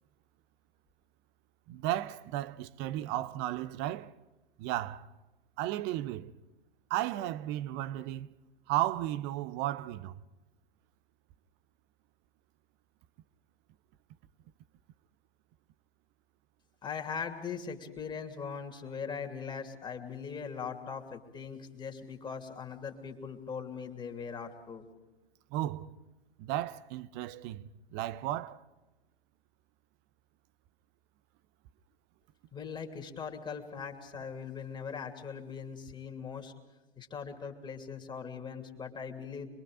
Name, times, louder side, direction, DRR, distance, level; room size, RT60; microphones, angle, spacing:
voice 1, 1.7-4.1 4.6-5.1 5.6-6.3 6.9-8.3 8.7-10.1 25.5-26.0 26.4-28.6, right 14 dB, 35° right, 0.8 m, -34 dB
voice 2, 16.8-24.8 32.5-36.5 37.0-39.5, left 6 dB, 15° left, 2.8 m, -40 dB
26.5 x 22.0 x 5.0 m
figure-of-eight pair, 105°, 30 cm